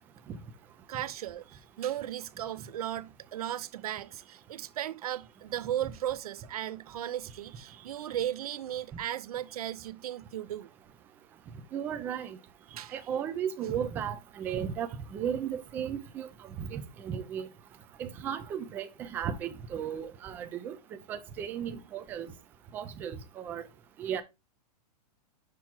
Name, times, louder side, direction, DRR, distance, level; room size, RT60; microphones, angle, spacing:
voice 1, 0.9-10.7 12.7-13.0, right 11 dB, 65° right, 0.6 m, -36 dB
voice 2, 11.7-12.4 12.9-16.3 16.6-17.5 18.0-20.8 21.1-22.3 22.7-23.6 24.0-24.2, right 8 dB, 10° right, 0.4 m, -35 dB
6.1 x 4.7 x 4.3 m
hypercardioid pair, 165°, 21 cm